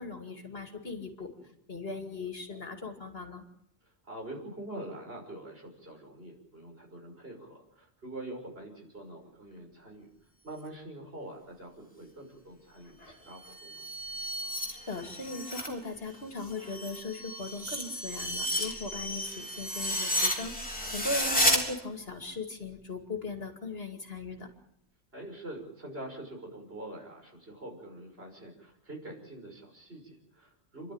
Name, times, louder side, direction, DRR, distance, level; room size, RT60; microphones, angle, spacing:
voice 1, 0.0-1.3 1.7-3.4 13.0-13.3 14.7-24.5, left 3 dB, 60° left, 5 dB, 2.7 m, -39 dB
voice 2, 3.8-10.1 10.4-13.8 18.4-18.6 20.7-21.0 25.1-30.9, right 1 dB, 60° right, 1 dB, 6.4 m, -45 dB
sound 1, 13.3-15.7 16.1-21.6, equal, 5° left, 3.7 m, -32 dB
29.5 x 12.0 x 8.8 m, 0.79 s
omnidirectional pair, 1.2 m